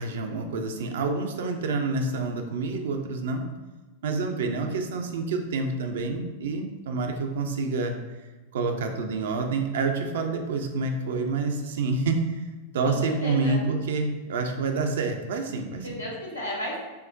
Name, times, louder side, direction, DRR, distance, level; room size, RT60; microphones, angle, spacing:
voice 1, 0.0-3.4 4.0-7.9 8.5-12.4 12.7-16.0, right 3 dB, 60° right, 4 dB, 0.4 m, -28 dB
voice 2, 12.8-13.6 15.8-16.8, equal, 85° left, -4 dB, 1.2 m, -33 dB
5.6 x 2.0 x 2.6 m, 1.2 s
figure-of-eight pair, 90°, 0 cm